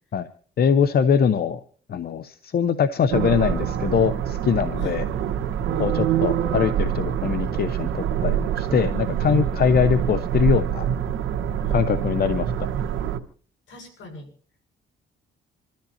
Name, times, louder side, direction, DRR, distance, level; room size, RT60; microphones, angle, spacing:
voice 1, 0.6-1.6 1.9-5.0 5.8-10.9 11.7-12.7, left 7 dB, 50° left, 12 dB, 0.8 m, -22 dB
sound 1, 3.1-13.2, right 9 dB, 80° right, 1.5 m, -25 dB
voice 2, 5.7-6.2 9.7-9.9 11.6-11.8 13.7-14.3, left 1 dB, 75° left, 4 dB, 6.7 m, -42 dB
27.5 x 13.5 x 2.8 m, 0.43 s
cardioid pair, 90°, 20 cm